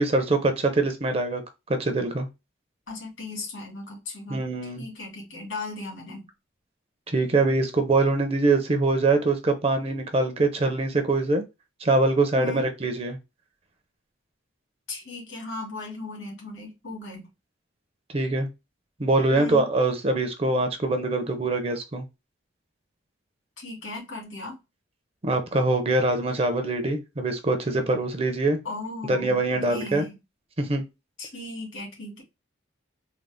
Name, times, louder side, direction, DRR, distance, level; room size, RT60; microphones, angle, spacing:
voice 1, 0.0-1.4 1.7-2.3 4.3-4.9 7.1-11.4 11.8-13.2 18.1-18.5 19.0-22.0 25.2-28.6 29.1-30.0 30.6-30.8, right 2 dB, 30° right, 7 dB, 0.5 m, -23 dB
voice 2, 2.9-6.2 12.4-12.7 14.9-17.3 19.3-19.7 23.6-24.6 28.6-30.1 31.2-32.2, left 2 dB, 85° left, -1 dB, 2.1 m, -37 dB
3.8 x 2.0 x 3.4 m, 0.24 s
head